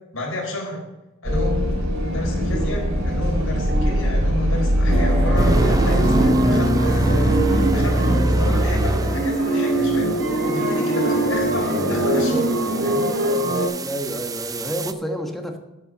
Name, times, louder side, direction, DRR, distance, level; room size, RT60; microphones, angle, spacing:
voice 1, 0.1-0.8 1.2-1.6 2.0-12.5 12.8-13.2, left 1 dB, 75° left, -1 dB, 4.1 m, -31 dB
sound 1, 1.2-6.3, equal, 70° right, 3.3 m, -21 dB
voice 2, 2.5-2.8 3.7-4.0 10.8-11.1 13.8-15.6, equal, ahead, 3 dB, 1.2 m, -30 dB
sound 2, 4.9-13.7, right 1 dB, 90° right, 3.0 m, -22 dB
sound 3, 5.4-14.9, right 2 dB, 15° right, 0.4 m, -25 dB
13.5 x 5.7 x 6.2 m, 1.0 s
head